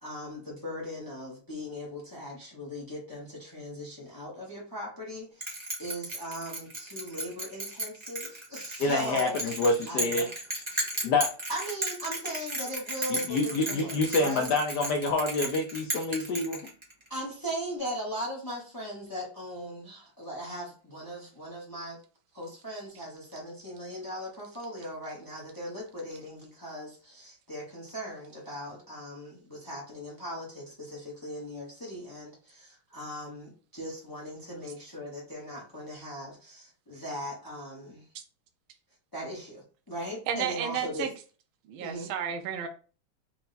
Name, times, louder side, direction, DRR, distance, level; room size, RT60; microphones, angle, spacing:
voice 1, 0.0-9.4 9.9-10.3 11.5-13.9 14.2-14.5 17.1-22.0 22.3-38.1 39.1-41.0 41.8-42.1, equal, 30° left, -4 dB, 0.4 m, -39 dB
Bell, 5.4-17.1, right 1 dB, 40° right, 0.4 m, -35 dB
voice 2, 8.8-10.3 11.0-11.3 13.1-16.6, left 2 dB, 80° left, 2 dB, 0.9 m, -27 dB
voice 3, 40.3-41.1 41.7-42.7, right 8 dB, 75° right, 5 dB, 1.3 m, -32 dB
4.5 x 2.2 x 3.9 m, 0.37 s
omnidirectional pair, 2.4 m